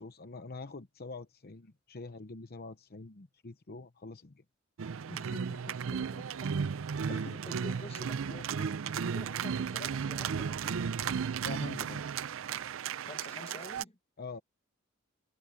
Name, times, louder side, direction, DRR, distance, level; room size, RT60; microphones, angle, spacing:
voice 1, 0.0-4.4 7.0-7.2 11.4-12.1 14.2-14.4, left 3 dB, 50° left, 0.8 m, -45 dB
sound 1, 4.8-13.8, right 6 dB, 75° right, 0.5 m, -34 dB
voice 2, 5.0-6.3 7.1-10.9 13.0-14.0, left 2 dB, 30° left, 1.4 m, -49 dB
head